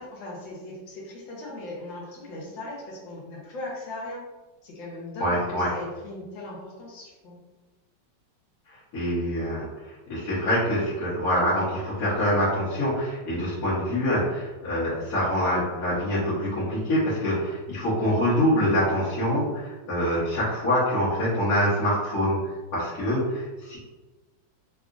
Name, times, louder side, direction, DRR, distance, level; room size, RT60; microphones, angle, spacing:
voice 1, 0.0-4.2 4.6-7.4, left 2 dB, 80° left, -4 dB, 1.6 m, -38 dB
voice 2, 5.2-5.7 8.7-22.4 22.7-23.8, equal, 55° left, -11 dB, 1.3 m, -25 dB
3.6 x 2.4 x 2.4 m, 1.2 s
omnidirectional pair, 2.1 m